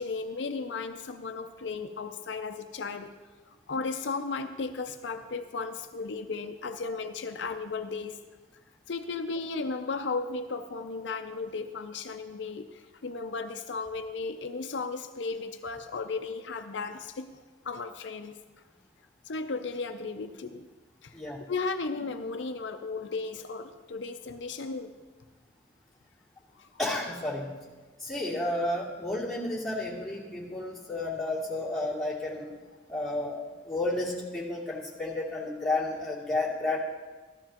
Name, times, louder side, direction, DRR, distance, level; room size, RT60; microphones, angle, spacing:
voice 1, 0.0-3.1 3.5-8.2 8.9-17.3 17.6-18.4 19.2-20.7 21.0-21.2 21.5-24.9 26.6-26.7, left 4 dB, 80° left, 7 dB, 0.6 m, -35 dB
voice 2, 26.8-27.5 28.0-32.5 32.9-33.4 33.6-36.8, left 2 dB, ahead, -8 dB, 2.7 m, -31 dB
14.0 x 13.0 x 2.9 m, 1.3 s
head